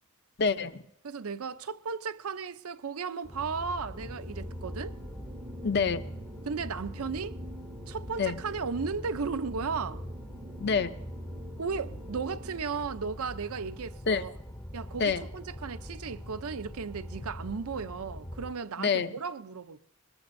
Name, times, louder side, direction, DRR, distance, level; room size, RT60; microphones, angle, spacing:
voice 1, 0.4-0.8 5.6-6.0 8.2-8.4 10.6-10.9 14.1-14.2 15.0-15.2 18.8-19.1, left 5 dB, 50° left, 0.7 m, -27 dB
voice 2, 1.0-5.0 6.5-7.4 7.9-10.0 11.6-14.3 14.7-19.8, right 5 dB, 90° right, 0.6 m, -35 dB
sound 1, 3.2-18.5, equal, 10° left, 0.6 m, -43 dB
sound 2, 3.9-12.6, right 1 dB, 35° right, 0.6 m, -47 dB
22.5 x 21.0 x 2.6 m
head